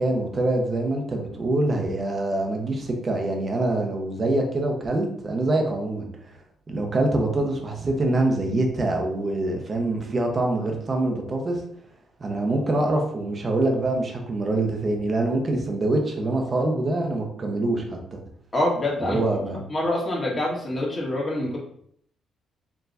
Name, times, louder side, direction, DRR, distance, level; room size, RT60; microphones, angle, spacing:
voice 1, 0.0-6.1 6.7-11.6 12.2-18.2 19.0-19.6, right 2 dB, 35° right, 2 dB, 0.9 m, -25 dB
voice 2, 18.5-19.2 19.7-21.6, left 1 dB, 30° left, -4 dB, 1.7 m, -25 dB
4.6 x 3.0 x 2.6 m, 0.66 s
cardioid pair, 90°, 0 cm